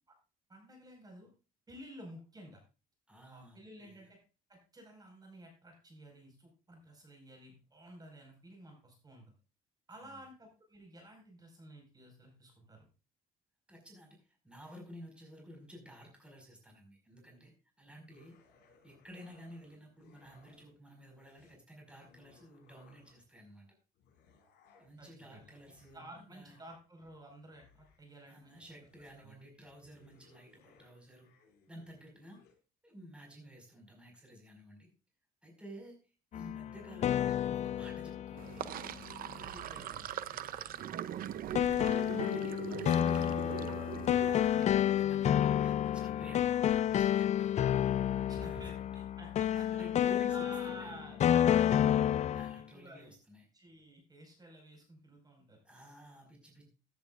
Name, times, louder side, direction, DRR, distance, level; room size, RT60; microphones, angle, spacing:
voice 1, 0.5-1.3 1.7-2.6 3.2-4.2 4.5-9.3 9.9-12.9 25.0-25.4 25.9-28.8 29.2-29.3 39.7-40.0 48.3-52.0 52.5-53.1 53.5-55.6, right 1 dB, 25° right, 2 dB, 5.1 m, -53 dB
voice 2, 3.1-4.0 9.9-10.1 13.7-17.5 17.8-18.4 18.8-23.7 24.8-26.6 28.3-31.3 31.7-32.4 32.8-34.9 35.4-38.7 39.3-41.2 42.0-43.8 44.1-47.6 48.3-49.0 49.5-51.1 52.3-53.5 55.6-56.7, equal, 5° right, 1 dB, 5.3 m, -52 dB
sound 1, 18.1-20.8 21.0-23.4 23.9-32.6, left 5 dB, 80° left, 5.6 m, -67 dB
sound 2, 36.3-39.3 41.5-52.6, left 10 dB, 45° left, 0.4 m, -30 dB
Sink (filling or washing), 38.4-44.6, right 10 dB, 60° right, 0.7 m, -41 dB
15.0 x 10.5 x 2.5 m, 0.34 s
cardioid pair, 110°, 17 cm